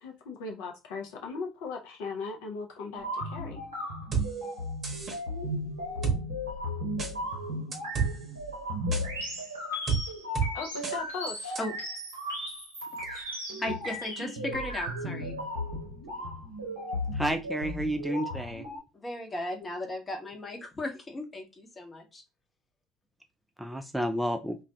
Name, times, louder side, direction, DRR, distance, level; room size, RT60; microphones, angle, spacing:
voice 1, 0.0-3.6 10.5-11.6, left 4 dB, 65° left, 2 dB, 0.5 m, -38 dB
sound 1, 2.9-18.8, left 1 dB, 85° right, 0.6 m, -35 dB
sound 2, 4.1-4.3 4.8-5.2 6.0-6.2 7.0-7.1 7.7-8.1 8.9-9.0 9.9-10.0 10.4-10.5 10.8-11.0 11.6-11.7, right 6 dB, 35° right, 0.8 m, -28 dB
voice 2, 13.6-15.4 18.9-22.2, left 1 dB, 25° left, 3 dB, 0.8 m, -36 dB
voice 3, 17.1-18.6 23.6-24.6, equal, 5° right, 6 dB, 0.3 m, -30 dB
2.2 x 2.1 x 2.7 m, 0.27 s
figure-of-eight pair, 60°, 0 cm